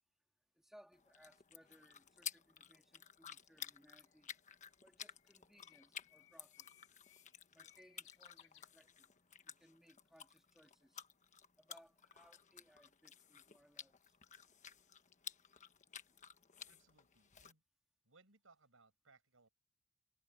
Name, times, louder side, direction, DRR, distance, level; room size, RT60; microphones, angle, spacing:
voice 1, 0.5-4.3 4.8-6.8 7.5-9.1 9.4-11.0 11.6-14.2 15.6-15.7, equal, ahead, 2.6 m, -66 dB
sound 1, 0.9-17.5, left 8 dB, 35° left, 1.3 m, -54 dB
Bird, 3.1-9.3, left 13 dB, 70° left, 6.3 m, -69 dB
voice 2, 16.7-17.6 18.0-19.5, right 3 dB, 75° right, 5.8 m, -69 dB
head